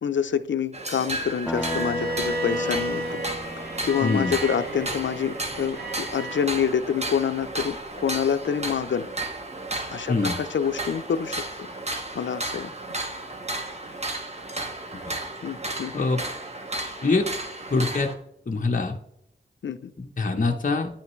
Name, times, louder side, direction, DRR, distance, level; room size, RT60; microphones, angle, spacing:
voice 1, 0.0-3.2 3.8-9.1 9.9-11.7 12.1-12.7 15.4-15.9 19.6-19.9, left 7 dB, 75° left, 12 dB, 0.5 m, -27 dB
sound 1, 0.7-18.1, right 2 dB, 35° right, 1.3 m, -33 dB
sound 2, 1.5-5.3, left 1 dB, ahead, 0.5 m, -37 dB
Bowed string instrument, 1.6-6.5, right 1 dB, 55° right, 1.8 m, -32 dB
voice 2, 4.0-4.4 10.1-10.4 14.9-15.2 15.9-16.2 17.0-17.3 17.7-18.1 18.5-19.0 20.0-20.9, left 3 dB, 45° left, 2 dB, 0.8 m, -24 dB
10.0 x 5.8 x 3.1 m, 0.75 s
wide cardioid pair, 65°, 19 cm